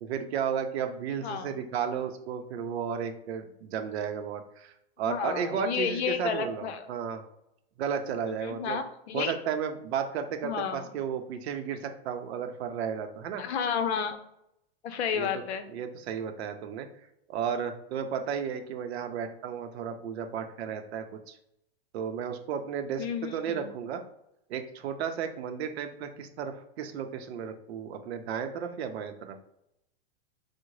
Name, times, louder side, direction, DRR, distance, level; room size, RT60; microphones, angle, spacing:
voice 1, 0.0-7.2 7.8-8.8 9.1-13.4 15.1-15.3 15.7-16.9 17.3-21.4 21.9-24.0 24.5-29.4, right 7 dB, 75° right, 6 dB, 0.6 m, -33 dB
voice 2, 1.2-1.5 5.0-6.9 8.3-9.3 10.4-10.9 13.4-14.2 14.8-15.7 23.0-23.7, left 7 dB, 75° left, 9 dB, 0.6 m, -31 dB
3.6 x 2.1 x 3.1 m, 0.80 s
supercardioid pair, 155°, 33 cm